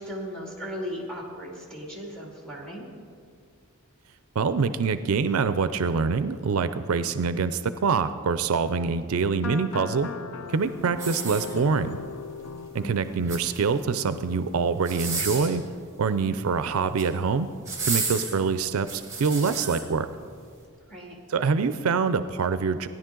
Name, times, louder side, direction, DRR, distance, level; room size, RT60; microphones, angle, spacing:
voice 1, 0.0-2.9 12.8-13.1 20.9-21.2, equal, 5° left, -2 dB, 2.2 m, -37 dB
voice 2, 4.4-10.1 10.5-12.0 12.7-15.6 16.0-17.5 17.9-20.1 21.3-22.9, right 5 dB, 70° right, 12 dB, 0.4 m, -25 dB
sound 1, 9.3-14.6, left 4 dB, 70° left, 0.6 m, -39 dB
sound 2, 10.9-12.0 13.1-13.8 14.8-15.6 16.7-17.1 17.6-19.8 20.4-20.5, right 4 dB, 15° right, 2.1 m, -32 dB
16.0 x 10.5 x 3.8 m, 2.1 s
head